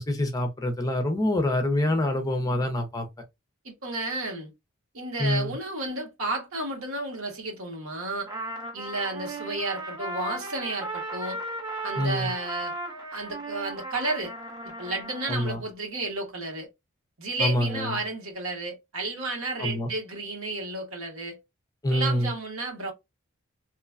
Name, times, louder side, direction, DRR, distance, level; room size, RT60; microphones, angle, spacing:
voice 1, 0.0-3.1 5.2-5.5 12.0-12.3 15.3-15.6 17.4-17.9 19.6-19.9 21.8-22.3, left 1 dB, 15° left, 0.6 m, -26 dB
voice 2, 3.6-4.5 4.9-8.3 8.7-11.4 11.8-12.7 13.1-14.3 14.8-16.7 17.2-21.4 21.9-22.9, right 2 dB, 80° right, 1.2 m, -32 dB
Trumpet, 8.3-15.5, right 2 dB, 20° right, 0.7 m, -36 dB
3.0 x 2.2 x 2.4 m
head